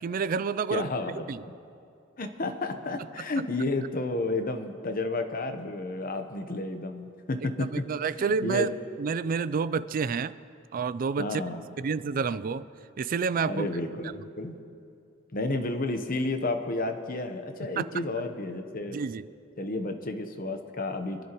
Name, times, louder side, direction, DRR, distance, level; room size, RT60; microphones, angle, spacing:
voice 1, 0.0-0.9 1.3-1.4 7.7-8.7 9.0-10.3 10.7-11.4 11.8-12.7 13.0-13.7 17.8-17.9 18.9-19.3, right 5 dB, 45° right, 16 dB, 0.4 m, -28 dB
voice 2, 0.7-1.3 2.2-7.7 8.2-8.8 11.2-11.6 13.5-14.6 15.3-19.0 19.6-21.2, left 2 dB, 45° left, 7 dB, 0.9 m, -31 dB
24.5 x 11.0 x 3.0 m, 2.5 s
head